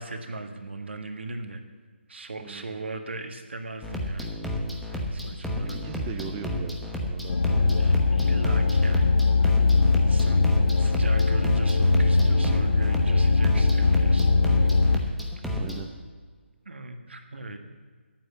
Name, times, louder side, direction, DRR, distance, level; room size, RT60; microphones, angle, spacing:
voice 1, 0.0-1.6 2.1-4.4 4.9-5.8 6.0-6.1 7.8-9.7 10.0-10.5 10.8-14.7 16.6-17.6, right 3 dB, 70° right, 5 dB, 1.6 m, -39 dB
voice 2, 2.4-2.7 5.8-7.8 15.6-15.9, right 8 dB, 20° right, 5 dB, 0.5 m, -39 dB
sound 1, 3.8-15.8, left 1 dB, ahead, 1.0 m, -31 dB
sound 2, 7.3-15.0, left 3 dB, 80° left, 0.4 m, -21 dB
11.0 x 9.1 x 7.4 m, 1.5 s
figure-of-eight pair, 150°, 6 cm